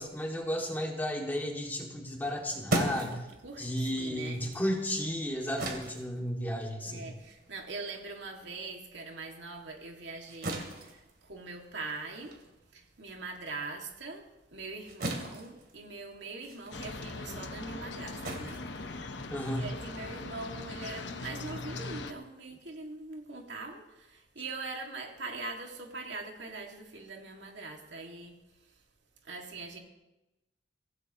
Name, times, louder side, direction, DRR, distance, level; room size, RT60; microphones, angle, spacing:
voice 1, 0.0-3.2 3.6-7.1 19.3-19.7, equal, 10° left, -1 dB, 2.4 m, -33 dB
sound 1, 2.2-9.0 9.3-19.5, right 1 dB, 60° right, 2.9 m, -40 dB
voice 2, 3.0-4.4 6.8-12.4 12.7-19.1 19.6-28.3 28.6-28.8 29.2-29.8, right 3 dB, 80° right, 1 dB, 2.4 m, -42 dB
sound 2, 16.7-22.1, left 3 dB, 75° left, 1.1 m, -40 dB
24.0 x 16.0 x 3.1 m, 1.0 s
head